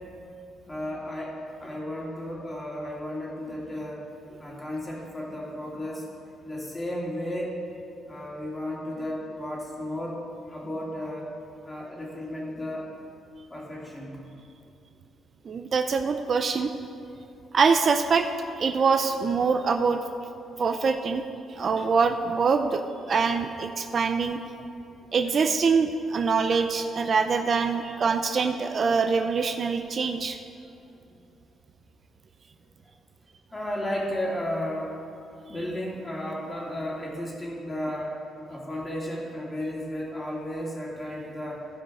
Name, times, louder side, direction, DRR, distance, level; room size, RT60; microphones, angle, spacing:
voice 1, 0.7-1.4 1.6-4.0 4.4-6.1 6.4-7.6 8.0-10.2 10.5-11.3 11.6-12.9 13.5-14.2 33.5-34.9 35.5-38.2 38.5-41.6, left 1 dB, 20° left, -4 dB, 2.8 m, -33 dB
voice 2, 15.4-16.7 17.5-18.3 18.6-20.0 20.6-21.2 21.5-22.8 23.1-24.4 25.1-30.4, right 5 dB, 50° right, 7 dB, 0.5 m, -24 dB
15.0 x 5.5 x 4.9 m, 2.7 s
cardioid pair, 90°, 0 cm